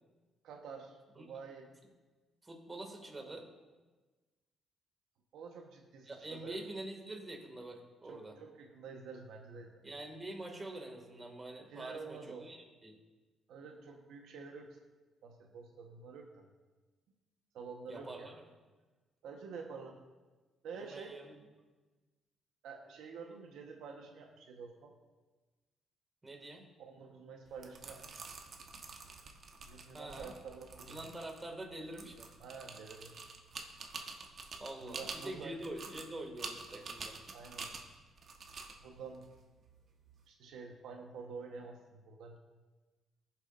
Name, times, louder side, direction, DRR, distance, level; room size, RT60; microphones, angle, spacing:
voice 1, 0.4-1.7 5.3-6.6 8.1-9.8 11.7-12.5 13.5-14.8 15.2-16.5 17.5-18.3 19.2-20.0 20.6-21.1 22.6-24.9 26.8-28.3 29.7-31.0 32.4-33.2 34.8-35.5 37.3-37.7 38.8-39.3 40.3-42.4, right 5 dB, 85° right, 2 dB, 1.2 m, -48 dB
voice 2, 2.4-3.5 6.1-8.3 9.8-13.0 17.9-18.4 20.7-21.4 26.2-26.7 29.9-30.3 30.9-32.3 34.6-37.2, right 1 dB, 20° right, 2 dB, 2.2 m, -45 dB
sound 1, 27.5-40.2, right 4 dB, 55° right, 1.3 m, -48 dB
17.0 x 7.4 x 2.6 m, 1.3 s
cardioid pair, 90°, 0 cm